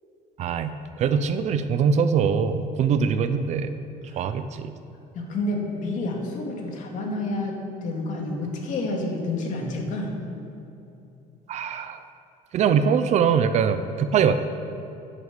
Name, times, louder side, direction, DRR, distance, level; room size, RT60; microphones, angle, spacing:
voice 1, 0.4-0.7 1.0-3.7 4.1-4.7 11.5-12.0 12.5-14.3, right 6 dB, 45° right, 10 dB, 0.6 m, -22 dB
voice 2, 5.1-10.2, left 2 dB, 50° left, 0 dB, 2.3 m, -29 dB
11.0 x 9.9 x 7.3 m, 2.8 s
cardioid pair, 170°, 16 cm